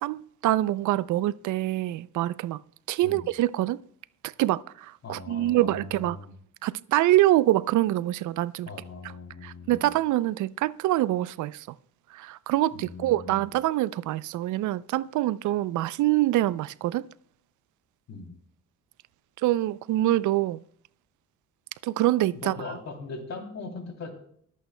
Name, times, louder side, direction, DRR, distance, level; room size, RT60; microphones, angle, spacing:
voice 1, 0.0-2.6 2.9-3.8 4.2-6.2 6.6-8.7 9.4-11.7 12.1-17.1 19.4-20.6 21.8-22.6, right 15 dB, 75° right, 0.5 m, -25 dB
voice 2, 5.0-6.3 8.7-9.8 12.7-13.4 18.1-18.3 22.3-24.1, left 3 dB, 60° left, 3.0 m, -40 dB
25.0 x 8.3 x 2.2 m
cardioid pair, 90°, 30 cm